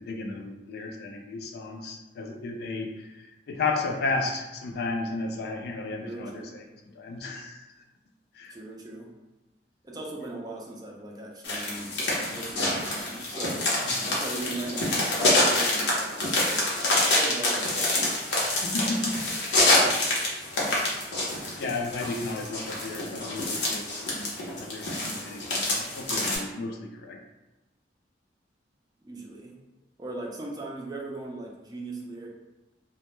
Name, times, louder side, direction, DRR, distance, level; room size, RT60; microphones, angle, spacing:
voice 1, 0.0-7.6 8.3-8.6 13.8-14.1 18.5-19.3 21.6-27.2, left 3 dB, 65° left, 3 dB, 0.3 m, -34 dB
voice 2, 6.0-6.6 8.5-9.1 9.8-13.7 14.0-16.7 17.1-18.2 29.0-29.6 30.0-32.3, right 2 dB, 20° right, -2 dB, 0.4 m, -39 dB
sound 1, 11.4-26.4, left 1 dB, 85° left, 0.7 m, -26 dB
2.1 x 2.0 x 3.0 m, 1.0 s
head